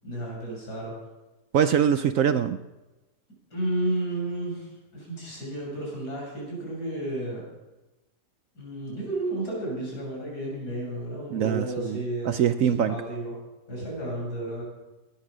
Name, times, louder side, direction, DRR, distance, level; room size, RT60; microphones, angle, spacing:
voice 1, 0.0-1.0 3.5-7.4 8.5-13.4 13.7-14.6, right 1 dB, 70° left, -3 dB, 7.3 m, -32 dB
voice 2, 1.5-2.6 11.3-12.0 12.2-13.0, right 8 dB, 65° right, 11 dB, 0.9 m, -23 dB
20.0 x 10.5 x 6.2 m, 1.1 s
omnidirectional pair, 1.8 m